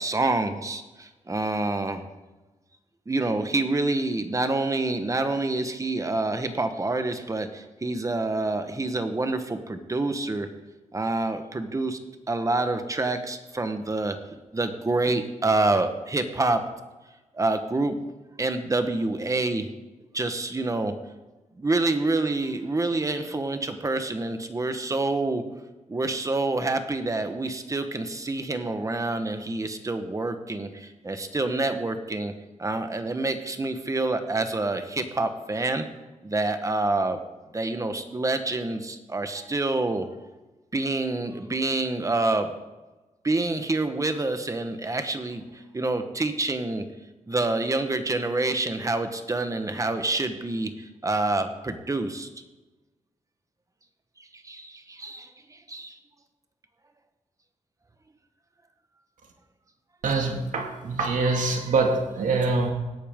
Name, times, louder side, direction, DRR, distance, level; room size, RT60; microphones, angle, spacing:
voice 1, 0.0-2.0 3.1-10.5 10.9-12.0 12.3-14.2 14.5-16.6 17.3-18.0 18.4-19.7 20.1-20.9 21.6-25.4 25.9-32.3 32.6-35.9 36.2-37.2 37.5-40.1 40.7-42.5 43.2-46.9 47.3-52.3 54.4-56.0, right 2 dB, 25° right, 8 dB, 1.2 m, -27 dB
voice 2, 60.0-62.7, right 3 dB, 85° right, 2 dB, 2.2 m, -24 dB
17.5 x 10.0 x 3.7 m, 1.1 s
wide cardioid pair, 110°, 13 cm